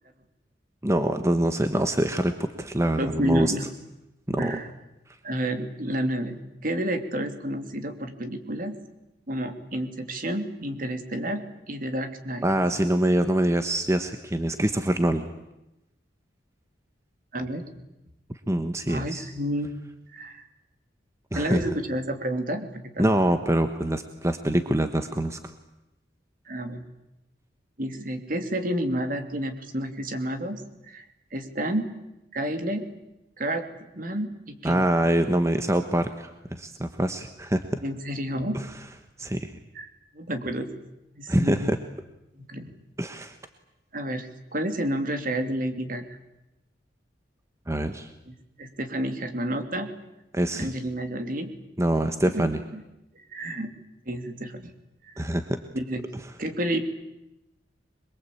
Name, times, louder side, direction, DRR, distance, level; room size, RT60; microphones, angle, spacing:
voice 1, 0.8-3.5 4.3-4.6 12.4-15.3 18.5-19.3 21.3-21.6 23.0-25.5 34.6-37.8 38.5-38.7 39.2-39.6 41.3-41.8 43.0-43.4 47.7-48.1 50.3-50.7 51.8-52.6 55.2-55.6, right 1 dB, 15° right, 8 dB, 1.2 m, -25 dB
voice 2, 3.0-3.6 4.4-4.7 5.2-6.4 6.6-8.7 9.3-12.5 17.3-17.6 18.9-19.7 20.1-20.5 21.3-23.1 26.5-26.8 27.8-30.6 30.9-31.0 31.3-31.9 32.3-32.8 33.4-33.6 33.9-34.9 37.8-38.6 39.7-40.7 41.2-41.7 42.4-42.7 43.9-46.2 48.3-49.9 50.5-51.5 52.3-52.8 53.2-53.7 54.1-54.7 55.1-55.2 55.7-56.0 56.4-56.8, right 1 dB, 50° right, 7 dB, 2.9 m, -30 dB
26.0 x 22.5 x 8.6 m, 0.92 s
head